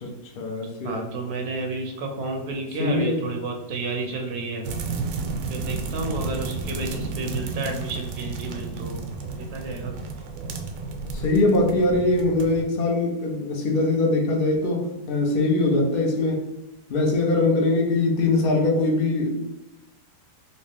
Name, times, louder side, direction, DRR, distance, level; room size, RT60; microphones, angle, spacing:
voice 1, 0.0-1.1 2.8-3.2 11.1-16.4 16.9-19.3, left 2 dB, 75° left, 1 dB, 0.5 m, -22 dB
voice 2, 0.8-4.7 5.5-9.9, right 2 dB, 70° right, 3 dB, 1.0 m, -31 dB
sound 1, 4.6-12.6, right 4 dB, 90° right, 1.2 m, -32 dB
3.2 x 2.7 x 3.3 m, 1.0 s
omnidirectional pair, 1.8 m